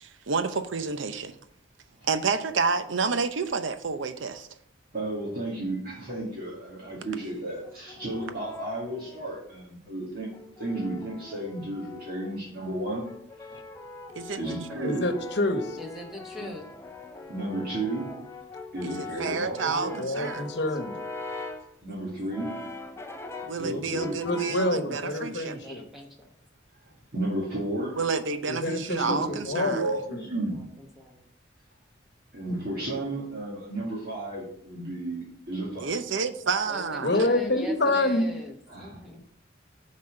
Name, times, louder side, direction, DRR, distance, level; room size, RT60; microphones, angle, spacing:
voice 1, 0.0-1.3 2.1-4.5 14.1-14.4 14.7-15.0 19.0-20.5 23.5-25.6 28.0-29.9 35.8-37.3, right 5 dB, 85° right, 10 dB, 0.7 m, -29 dB
voice 2, 4.9-10.3 10.6-13.1 13.4-13.5 14.4-15.1 16.4-16.5 17.3-18.1 18.7-20.0 21.8-22.5 23.6-25.8 27.1-28.0 29.0-30.6 32.3-35.9 38.7-39.0, right 1 dB, 50° right, -6 dB, 2.2 m, -33 dB
Brass instrument, 7.6-9.6 10.3-12.4 13.0-21.7 22.3-23.7 24.0-24.8, left 2 dB, 15° left, 0.6 m, -41 dB
voice 3, 14.8-15.8 19.6-20.9 23.6-25.8 28.5-29.8 30.1-30.2 37.0-38.3, left 2 dB, 65° left, 6 dB, 1.1 m, -27 dB
voice 4, 15.8-16.6 20.7-21.0 25.2-26.3 30.5-31.3 36.7-39.2, left 1 dB, ahead, -1 dB, 1.0 m, -43 dB
7.2 x 4.2 x 6.4 m, 0.68 s
head